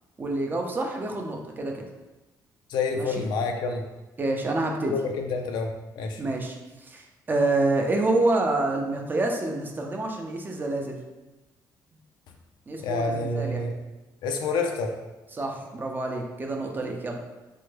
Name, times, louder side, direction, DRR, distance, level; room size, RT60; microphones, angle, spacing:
voice 1, 0.2-1.8 2.9-3.2 4.2-4.9 6.2-11.0 12.7-13.6 15.3-17.2, right 2 dB, 25° right, 1 dB, 0.5 m, -27 dB
voice 2, 2.7-3.8 4.9-6.2 12.8-13.7 14.2-14.9, left 3 dB, 80° left, 3 dB, 0.4 m, -28 dB
3.3 x 2.2 x 3.2 m, 1.1 s
cardioid pair, 110°, 8 cm